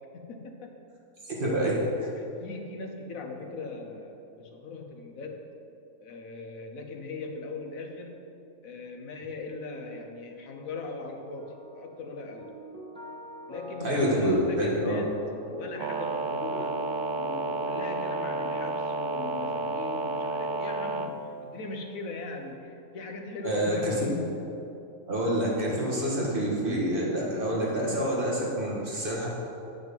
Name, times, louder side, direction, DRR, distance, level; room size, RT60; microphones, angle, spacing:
voice 1, 0.1-0.7 2.2-5.4 6.0-8.1 8.6-12.5 13.5-15.1 15.5-16.9 17.2-24.2 24.7-24.8, left 3 dB, 90° left, 4 dB, 1.3 m, -39 dB
voice 2, 1.2-2.1 13.8-15.0 23.4-23.9 25.1-29.3, equal, 40° right, -4 dB, 1.9 m, -27 dB
sound 1, 11.4-18.6, equal, 5° left, 1.1 m, -44 dB
sound 2, 15.8-21.1, right 3 dB, 80° right, 0.4 m, -31 dB
9.3 x 6.0 x 5.3 m, 2.7 s
omnidirectional pair, 1.4 m